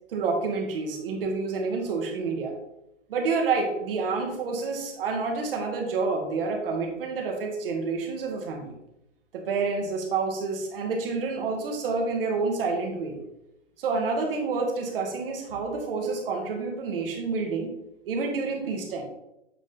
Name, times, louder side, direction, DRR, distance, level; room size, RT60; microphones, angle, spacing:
voice 1, 0.1-2.5 3.1-8.8 9.3-13.2 13.8-17.7 18.0-19.0, right 4 dB, 50° right, 2 dB, 1.6 m, -28 dB
8.2 x 3.6 x 4.0 m, 0.87 s
hypercardioid pair, 160°, 36 cm